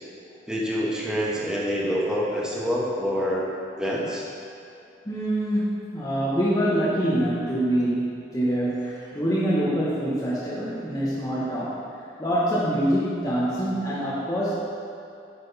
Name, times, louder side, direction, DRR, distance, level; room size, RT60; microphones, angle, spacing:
voice 1, 0.5-3.5 3.7-4.3, equal, 5° right, -5 dB, 1.3 m, -26 dB
voice 2, 5.0-11.8 12.2-14.5, equal, 20° left, -9 dB, 1.1 m, -25 dB
10.0 x 6.2 x 4.1 m, 2.7 s
head